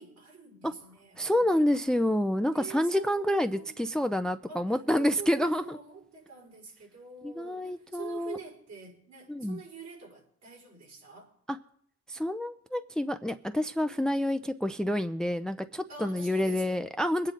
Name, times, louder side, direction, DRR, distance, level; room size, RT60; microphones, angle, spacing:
voice 1, 0.0-1.9 2.5-4.7 5.0-11.3 13.9-14.1 15.9-16.8, right 4 dB, 55° right, 5.1 m, -47 dB
voice 2, 1.2-5.8 7.2-8.4 9.3-9.6 11.5-11.6 12.1-17.3, left 1 dB, ahead, 0.5 m, -28 dB
22.5 x 9.2 x 3.8 m
cardioid pair, 90°, 30 cm